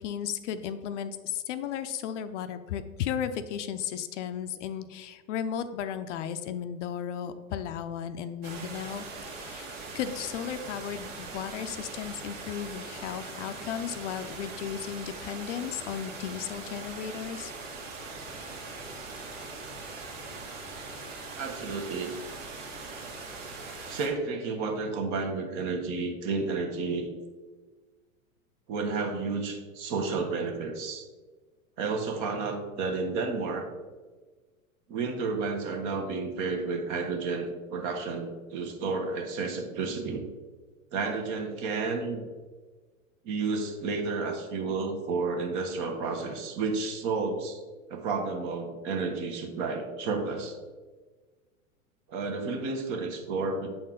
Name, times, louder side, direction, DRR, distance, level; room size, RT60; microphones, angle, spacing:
voice 1, 0.0-9.7 9.9-17.5, left 9 dB, 60° left, 10 dB, 0.6 m, -35 dB
sound 1, 8.4-24.1, right 3 dB, 65° right, 1.8 m, -41 dB
voice 2, 21.4-22.2 23.9-27.1 28.7-31.1 31.8-33.7 34.9-40.2 40.9-42.2 43.2-47.6 47.9-50.6 52.1-53.7, right 4 dB, 45° right, 4 dB, 1.2 m, -31 dB
7.5 x 4.3 x 3.8 m, 1.3 s
hypercardioid pair, 100°, 42 cm